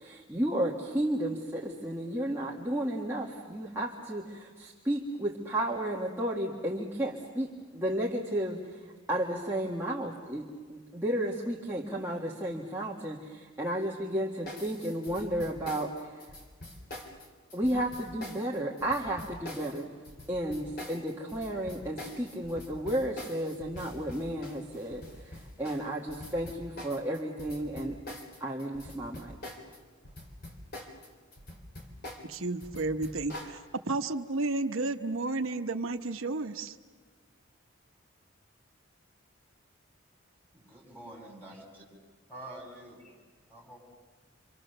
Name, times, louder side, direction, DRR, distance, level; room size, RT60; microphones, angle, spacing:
voice 1, 0.0-16.2 17.5-19.9 20.3-28.0 28.4-29.4, right 1 dB, 10° right, -4 dB, 1.7 m, -33 dB
sound 1, 14.5-29.8 30.0-33.6, left 1 dB, 45° left, 3.4 m, -45 dB
voice 2, 32.3-36.8, right 2 dB, 80° right, 6 dB, 1.0 m, -32 dB
voice 3, 40.5-41.8 42.3-43.0 43.5-43.8, right 1 dB, 10° left, -2 dB, 6.6 m, -47 dB
28.0 x 26.0 x 6.8 m, 1.5 s
head